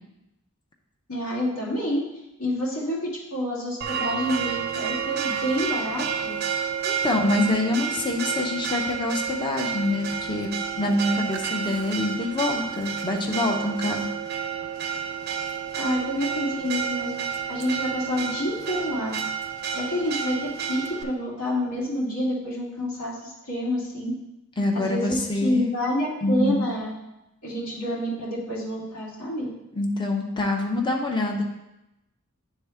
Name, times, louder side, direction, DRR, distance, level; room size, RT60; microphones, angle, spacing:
voice 1, 1.1-2.0 2.4-6.3 15.8-17.1 17.5-19.2 19.7-24.1 24.7-26.9 27.4-29.5, left 1 dB, 80° left, -6 dB, 2.3 m, -28 dB
Church bell, 3.8-21.0, right 7 dB, 50° right, 0.4 m, -30 dB
voice 2, 6.9-10.5 10.8-14.1 24.6-25.7 26.2-26.7 29.7-31.4, left 2 dB, 20° left, 1 dB, 0.7 m, -25 dB
9.9 x 3.6 x 3.4 m, 0.91 s
head